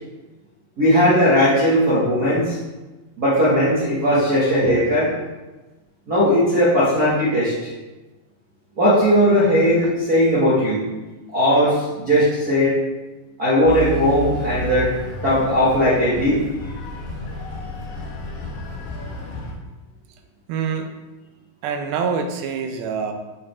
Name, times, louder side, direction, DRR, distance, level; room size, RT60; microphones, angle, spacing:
voice 1, 0.8-2.6 3.2-5.1 6.1-7.7 8.8-10.8 11.3-12.8 13.4-14.9 15.2-16.4, equal, 35° right, -9 dB, 1.6 m, -18 dB
sound 1, 13.6-19.5, left 2 dB, 85° left, 3.6 m, -32 dB
voice 2, 20.5-20.9 21.6-23.1, right 6 dB, 75° right, 5 dB, 2.5 m, -25 dB
11.0 x 5.2 x 3.6 m, 1.1 s
omnidirectional pair, 4.6 m